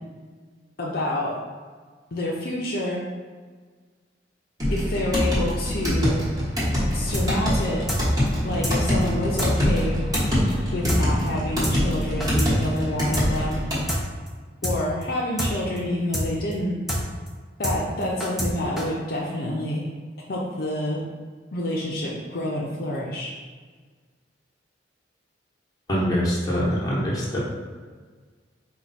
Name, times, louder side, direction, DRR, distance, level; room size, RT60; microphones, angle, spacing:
voice 1, 0.8-1.3 2.1-3.0 4.7-6.2 6.9-7.8 8.4-10.0 10.7-13.6 14.6-16.8 17.6-19.9 20.3-21.0 21.5-23.3, left 1 dB, 55° left, -4 dB, 0.6 m, -28 dB
sound 1, 4.6-13.9, equal, 20° right, 1.2 m, -24 dB
sound 2, 7.1-7.3 7.5-7.6 7.9-8.0 8.3-8.4 8.6-8.8 9.0-9.1 9.4-9.5 9.8-9.9 10.1-10.3 10.5-10.6 10.9-11.0 11.3-11.4 11.6-11.8 12.0-12.5 12.8-12.9 13.1-13.3 13.5-13.6 13.9-14.0 14.3-14.4 14.6-14.8 15.0-15.1 15.4-15.5 15.8-15.9 16.1-16.3 16.5-16.6 16.9-17.0 17.3-17.4 17.6-17.8 18.0-18.5 18.8-18.9, equal, ahead, 0.6 m, -26 dB
voice 2, 25.9-27.4, equal, 20° left, -6 dB, 1.0 m, -24 dB
4.5 x 2.2 x 4.0 m, 1.5 s
head